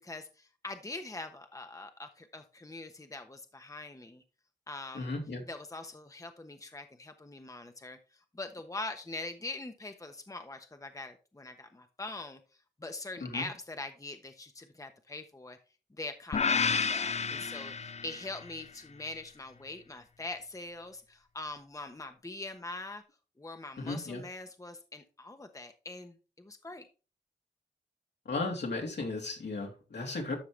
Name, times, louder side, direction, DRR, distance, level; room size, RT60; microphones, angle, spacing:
voice 1, 0.0-4.2 4.7-5.1 5.5-12.4 12.8-15.6 15.9-23.0 23.4-26.9, left 2 dB, 20° left, 6 dB, 1.1 m, -43 dB
voice 2, 4.9-5.4 13.2-13.5 23.8-24.2 28.2-30.3, left 3 dB, 75° left, 0 dB, 3.0 m, -35 dB
sound 1, 16.3-18.5, left 5 dB, 40° left, 0.4 m, -30 dB
12.5 x 5.7 x 3.3 m, 0.33 s
wide cardioid pair, 70°, 18 cm